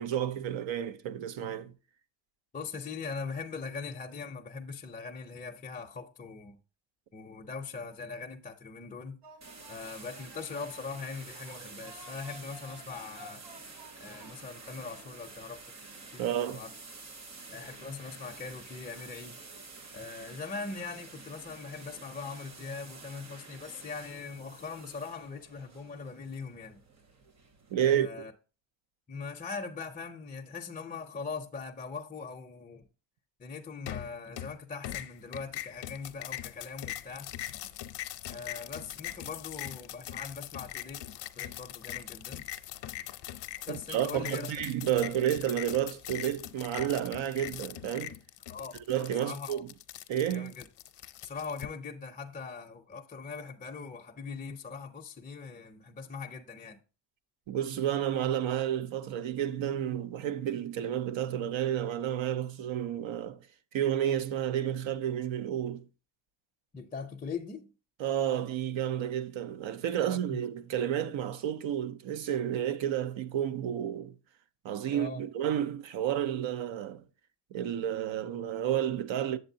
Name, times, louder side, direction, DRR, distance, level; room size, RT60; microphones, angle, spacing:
voice 1, 0.0-1.7 16.2-16.6 27.7-28.1 43.7-48.2 48.9-49.7 50.1-50.5 57.5-63.5 63.7-65.8 68.0-74.1 74.6-77.0 77.5-79.4, right 10 dB, 85° right, 0.7 m, -31 dB
voice 2, 2.5-6.6 7.1-9.2 9.7-13.4 14.0-15.6 16.1-16.7 17.5-19.4 19.9-26.8 27.8-28.3 29.1-32.8 33.4-37.3 38.3-41.0 41.4-42.4 43.7-44.6 48.5-48.8 49.2-49.6 50.3-50.7 51.2-56.8 66.7-67.7 70.0-70.4 74.9-75.2, left 5 dB, 20° left, 0.4 m, -41 dB
sound 1, 9.2-16.7, right 2 dB, 60° right, 2.0 m, -55 dB
sound 2, 9.4-27.7, right 3 dB, 35° right, 0.8 m, -49 dB
sound 3, 33.9-34.6 34.8-51.7, left 13 dB, 65° left, 0.6 m, -41 dB
8.0 x 7.6 x 2.7 m
cardioid pair, 170°, 45 cm